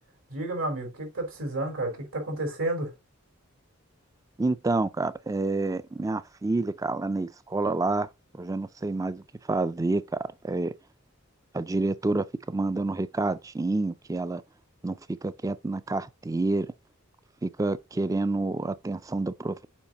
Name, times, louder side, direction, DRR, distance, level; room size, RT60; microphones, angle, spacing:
voice 1, 0.3-2.9, right 2 dB, 80° right, 3.7 m, -31 dB
voice 2, 4.4-8.1 8.3-10.2 10.4-10.7 11.5-14.4 14.8-15.0 15.2-16.7 17.4-19.7, right 2 dB, 15° right, 0.3 m, -28 dB
7.2 x 5.1 x 2.9 m
head